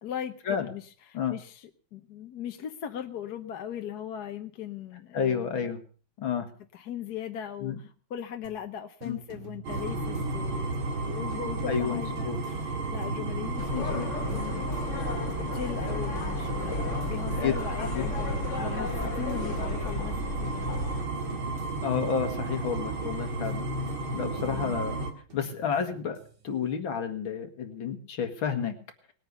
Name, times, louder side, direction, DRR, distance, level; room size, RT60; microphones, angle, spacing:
voice 1, 0.0-5.7 6.7-14.8 15.5-20.7 24.4-24.8, left 9 dB, 60° left, 6 dB, 1.3 m, -39 dB
voice 2, 5.1-5.8 6.2-6.5 7.6-7.7 9.0-9.2 11.7-12.4 13.7-14.1 17.3-17.6 17.9-18.0 21.8-23.6 24.1-25.0 25.3-26.2 26.4-28.7, left 7 dB, 85° left, 6 dB, 2.7 m, -30 dB
sound 1, 8.4-8.7 9.0-11.0 11.3-13.3 13.6-15.5 15.9-17.9 18.1-20.1 20.4-22.4 22.7-24.6 25.0-26.7, right 7 dB, 60° right, 2.8 m, -49 dB
sound 2, 9.6-25.1, right 2 dB, 90° right, 3.0 m, -32 dB
sound 3, 13.6-21.1, left 4 dB, 45° left, 1.4 m, -35 dB
20.0 x 9.1 x 6.8 m, 0.43 s
omnidirectional pair, 2.2 m